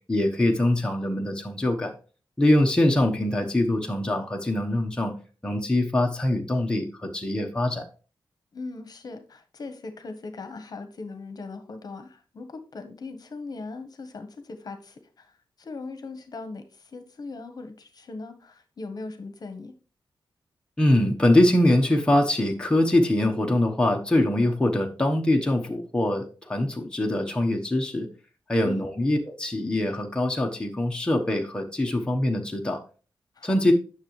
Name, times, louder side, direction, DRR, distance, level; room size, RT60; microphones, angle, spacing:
voice 1, 0.1-1.9 2.4-5.1 5.4-7.8 20.8-28.1 28.5-32.8 33.4-33.7, left 1 dB, 10° left, 1 dB, 1.1 m, -23 dB
voice 2, 8.5-19.7 28.6-28.8 33.3-33.5, left 3 dB, 50° left, 9 dB, 1.1 m, -39 dB
9.5 x 6.6 x 3.1 m, 0.37 s
wide cardioid pair, 145°, 9 cm